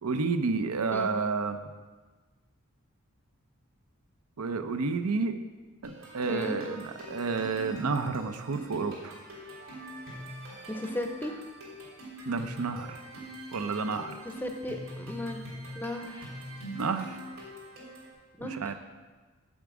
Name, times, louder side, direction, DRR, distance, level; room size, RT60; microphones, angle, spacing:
voice 1, 0.0-1.6 4.4-5.4 5.8-9.1 12.3-13.0 13.5-14.2 16.7-17.2 18.4-18.8, right 4 dB, 90° right, 8 dB, 0.7 m, -30 dB
sound 1, 5.8-18.1, equal, 65° right, 3.2 m, -44 dB
voice 2, 6.3-6.6 10.7-11.3 14.4-15.4 15.7-16.3 18.4-18.8, left 1 dB, 10° left, 4 dB, 0.5 m, -36 dB
8.2 x 7.3 x 4.9 m, 1.3 s
head